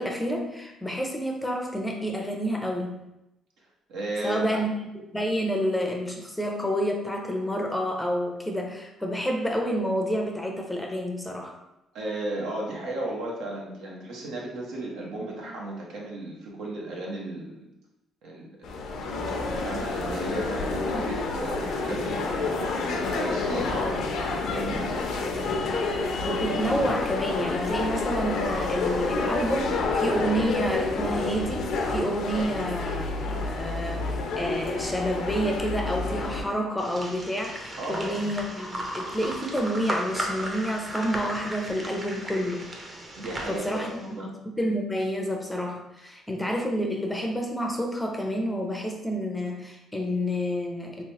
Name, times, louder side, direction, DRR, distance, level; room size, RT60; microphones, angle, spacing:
voice 1, 0.0-3.0 4.2-4.7 5.1-11.5 26.3-42.7 43.5-43.9 44.2-51.0, equal, 5° left, 1 dB, 0.5 m, -29 dB
voice 2, 3.9-4.6 5.5-5.6 11.9-17.6 18.2-19.1 19.5-25.4 37.8-38.3 43.2-44.3, right 1 dB, 80° right, -2 dB, 0.9 m, -35 dB
sound 1, 18.6-36.4, left 3 dB, 70° left, 0.5 m, -29 dB
sound 2, 36.8-44.1, right 1 dB, 25° right, 0.7 m, -35 dB
3.2 x 3.0 x 2.9 m, 0.91 s
cardioid pair, 95°, 0 cm